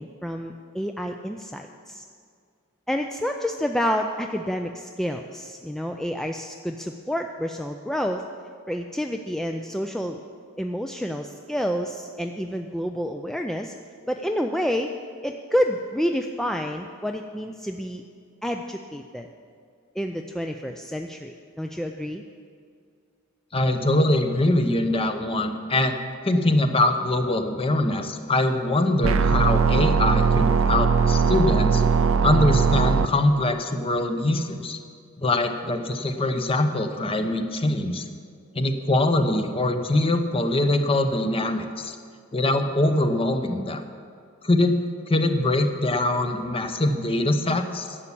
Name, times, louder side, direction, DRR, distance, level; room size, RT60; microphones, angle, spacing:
voice 1, 0.0-2.0 2.9-8.2 8.7-10.2 10.6-13.7 14.1-14.9 15.2-18.0 18.4-19.3 20.0-22.2, equal, ahead, 4 dB, 0.4 m, -29 dB
voice 2, 23.5-26.0 26.2-31.8 32.2-34.8 35.2-38.0 38.5-42.0 42.3-43.8 44.4-44.7 45.1-48.0, left 2 dB, 25° left, 7 dB, 0.8 m, -23 dB
sound 1, 29.0-33.1, right 5 dB, 75° right, 0.5 m, -20 dB
11.0 x 7.2 x 8.4 m, 2.2 s
head